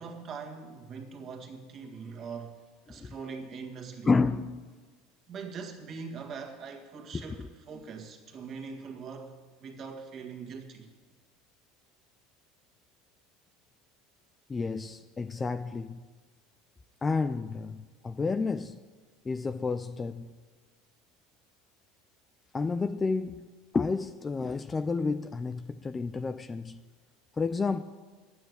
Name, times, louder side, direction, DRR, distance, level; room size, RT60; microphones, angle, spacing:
voice 1, 0.0-2.6 2.9-4.1 5.3-9.3 9.6-10.9, right 5 dB, 35° right, 1.8 m, -42 dB
voice 2, 4.0-4.6 7.1-7.5 14.5-16.0 17.0-18.8 19.3-20.3 22.5-23.5 23.7-26.8 27.4-27.8, left 4 dB, 15° left, 0.4 m, -30 dB
11.0 x 8.9 x 9.3 m
supercardioid pair, 150°, 0 cm